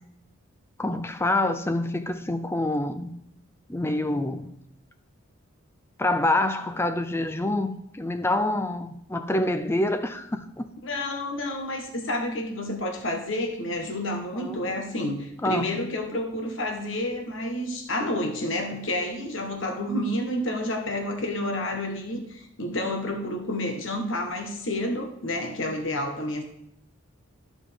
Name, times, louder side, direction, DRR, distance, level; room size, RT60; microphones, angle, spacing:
voice 1, 0.8-3.1 3.7-4.5 6.0-10.7 14.3-14.6 15.4-15.7, left 1 dB, 10° left, 0.4 m, -26 dB
voice 2, 10.8-26.4, left 1 dB, 60° left, 1.2 m, -30 dB
13.5 x 5.0 x 3.5 m
head